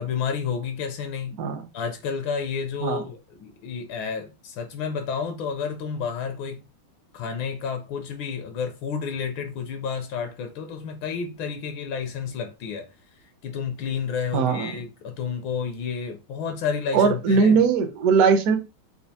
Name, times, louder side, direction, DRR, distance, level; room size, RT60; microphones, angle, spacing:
voice 1, 0.0-1.4 1.7-6.6 7.1-12.9 13.4-17.6, left 6 dB, 75° left, 1.3 m, -30 dB
voice 2, 14.3-14.7 16.9-18.6, right 5 dB, 65° right, 0.9 m, -20 dB
4.2 x 2.4 x 2.7 m
omnidirectional pair, 2.3 m